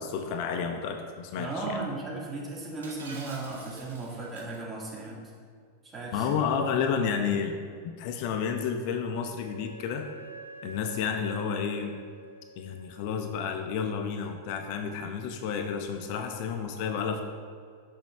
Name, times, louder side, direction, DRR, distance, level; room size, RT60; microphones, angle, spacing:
voice 1, 0.0-1.8 6.1-7.6 8.0-10.1 10.6-11.9 12.6-17.2, left 6 dB, 45° left, 6 dB, 0.4 m, -31 dB
voice 2, 1.4-5.2 5.8-6.3, right 3 dB, 20° right, -4 dB, 1.6 m, -36 dB
Shatter, 2.8-4.6, right 3 dB, 65° right, 1.0 m, -47 dB
Wind instrument woodwind instrument, 8.8-13.4, right 3 dB, 85° right, 0.5 m, -47 dB
6.1 x 6.1 x 3.2 m, 2.1 s
figure-of-eight pair, 90°, 0 cm